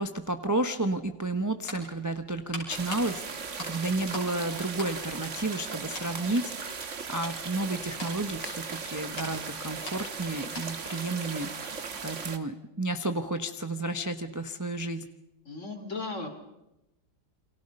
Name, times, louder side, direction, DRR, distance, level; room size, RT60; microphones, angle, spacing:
voice 1, 0.0-6.7 7.1-11.7 12.0-15.1, right 2 dB, 15° right, 8 dB, 0.8 m, -32 dB
sound 1, 1.6-4.4 4.7-5.6 5.9-6.2 6.7-11.0 11.3-11.4, left 2 dB, 80° left, 6.6 m, -43 dB
sound 2, 2.7-12.4, right 5 dB, 45° right, 1.6 m, -38 dB
voice 2, 15.5-16.3, left 3 dB, 40° left, 6 dB, 3.5 m, -36 dB
29.0 x 24.0 x 5.4 m, 0.92 s
omnidirectional pair, 1.9 m